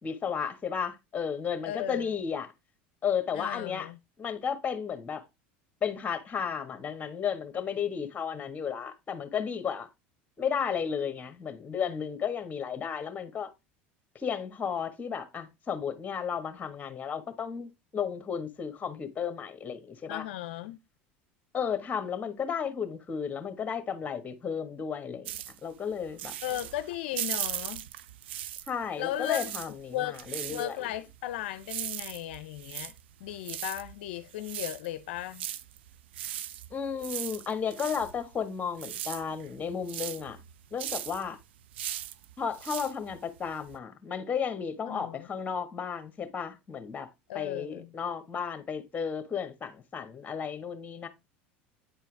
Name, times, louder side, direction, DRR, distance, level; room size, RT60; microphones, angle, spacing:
voice 1, 0.0-2.5 3.0-3.9 4.2-5.2 5.8-9.9 10.4-13.5 14.1-20.2 21.5-25.3 25.6-26.3 28.7-30.8 36.7-40.4 40.7-41.4 42.4-47.1 47.3-51.1, left 7 dB, 25° left, 1.5 m, -33 dB
voice 2, 1.6-2.2 3.3-4.0 20.1-20.8 26.4-27.8 29.0-29.5 29.9-30.2 30.5-32.9 33.2-35.4 44.9-45.3 47.3-47.9, left 13 dB, 80° left, 0.5 m, -36 dB
sound 1, 25.3-28.9 29.1-43.8, right 12 dB, 85° right, 0.5 m, -39 dB
8.8 x 4.5 x 3.4 m
hypercardioid pair, 90°, 6 cm